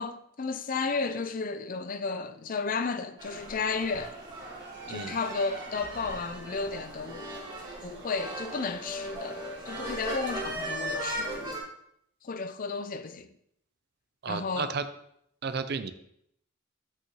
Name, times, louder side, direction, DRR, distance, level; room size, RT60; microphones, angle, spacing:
voice 1, 0.0-4.1 4.9-7.3 7.8-11.6 12.2-13.3 14.3-14.7, left 4 dB, 45° left, 0.5 m, -33 dB
sound 1, 3.2-11.6, right 1 dB, 20° right, 1.8 m, -37 dB
voice 2, 14.2-14.9 15.4-15.9, right 5 dB, 55° right, 0.5 m, -33 dB
8.3 x 6.3 x 3.0 m
head